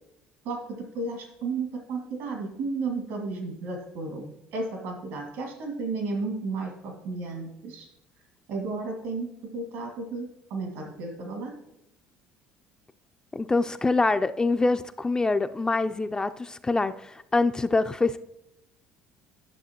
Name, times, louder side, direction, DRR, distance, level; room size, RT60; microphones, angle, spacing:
voice 1, 0.4-7.9 8.5-11.6, right 3 dB, 80° right, 2 dB, 2.2 m, -33 dB
voice 2, 13.3-18.2, left 3 dB, 15° left, 10 dB, 0.3 m, -25 dB
10.5 x 6.4 x 2.9 m, 0.84 s
supercardioid pair, 80°, 4 cm